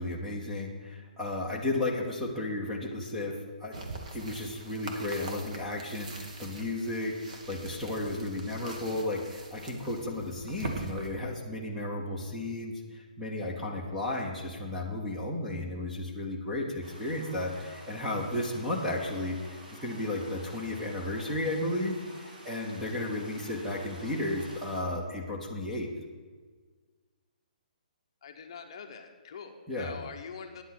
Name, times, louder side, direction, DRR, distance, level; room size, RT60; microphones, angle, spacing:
voice 1, 0.0-3.3 3.6-3.8 4.1-25.9 29.7-30.0, left 2 dB, ahead, -3 dB, 0.8 m, -33 dB
sound 1, 3.7-11.1, right 2 dB, 50° right, 1.6 m, -43 dB
sound 2, 16.8-24.8, right 1 dB, 90° right, 3.2 m, -50 dB
voice 2, 28.2-30.6, left 6 dB, 35° left, 5 dB, 0.8 m, -44 dB
9.6 x 7.9 x 5.9 m, 1.5 s
hypercardioid pair, 175°, 5 cm